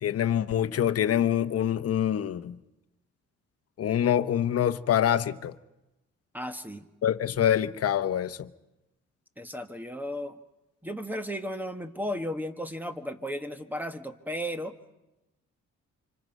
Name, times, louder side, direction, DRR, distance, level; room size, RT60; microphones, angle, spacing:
voice 1, 0.0-2.6 3.8-5.5 7.0-8.5, left 10 dB, 50° left, 0.9 m, -25 dB
voice 2, 6.3-6.9 9.4-10.4 10.8-14.7, equal, 5° right, 1.4 m, -34 dB
26.0 x 25.0 x 5.4 m
cardioid pair, 90°, 30 cm